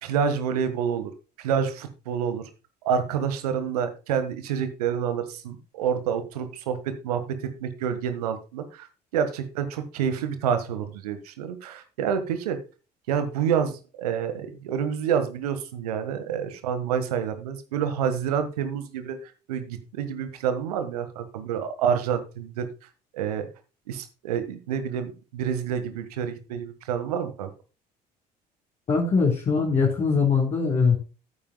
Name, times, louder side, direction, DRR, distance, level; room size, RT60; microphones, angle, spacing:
voice 1, 0.0-1.1 1.4-2.5 2.8-8.9 9.1-12.6 13.1-22.7 23.1-23.5 23.9-27.5, right 7 dB, 70° right, 10 dB, 1.6 m, -28 dB
voice 2, 28.9-31.0, left 5 dB, 35° left, -3 dB, 3.6 m, -22 dB
14.5 x 8.9 x 2.3 m, 0.32 s
figure-of-eight pair, 55°, 21 cm